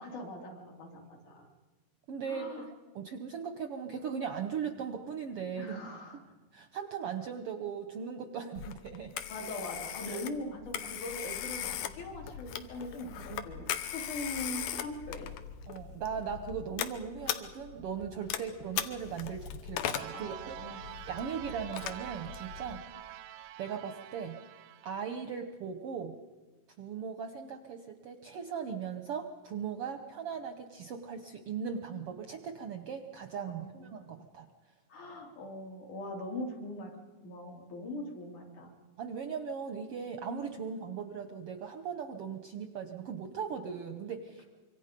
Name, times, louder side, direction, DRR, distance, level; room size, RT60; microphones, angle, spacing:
voice 1, 0.0-1.5 2.3-2.7 5.6-6.2 9.3-15.3 18.3-18.4 20.1-20.8 33.5-33.9 34.9-37.0 37.2-38.7, left 1 dB, 70° left, 0 dB, 4.5 m, -41 dB
voice 2, 2.1-2.7 2.9-5.8 6.5-9.1 10.1-10.2 13.3-13.4 15.7-23.2 23.6-24.4 24.8-26.2 26.8-34.5 39.0-44.4, right 7 dB, 70° right, 7 dB, 1.4 m, -39 dB
Telephone, 8.6-22.8, left 10 dB, 85° left, 2.6 m, -39 dB
sound 1, 19.9-25.2, right 13 dB, 90° right, 2.4 m, -46 dB
25.0 x 25.0 x 5.2 m, 1.3 s
omnidirectional pair, 3.7 m